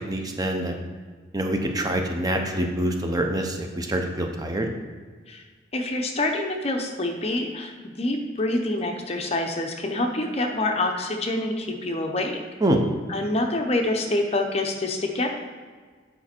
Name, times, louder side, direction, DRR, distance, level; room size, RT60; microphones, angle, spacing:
voice 1, 0.1-0.7 1.3-4.7 12.6-12.8, right 1 dB, 20° right, 3 dB, 0.6 m, -25 dB
voice 2, 5.7-12.4 13.1-15.3, left 2 dB, 30° left, 3 dB, 0.7 m, -26 dB
8.4 x 5.1 x 4.4 m, 1.5 s
head